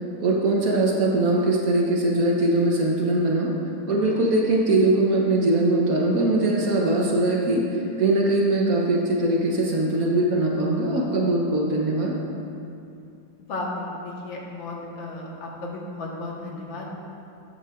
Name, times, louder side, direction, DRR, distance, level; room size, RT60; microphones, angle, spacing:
voice 1, 0.2-3.5 3.9-12.2, right 2 dB, 55° right, -2 dB, 1.1 m, -21 dB
voice 2, 13.4-17.0, left 2 dB, 80° left, -2 dB, 2.0 m, -34 dB
12.5 x 8.6 x 2.4 m, 2.6 s
omnidirectional pair, 2.1 m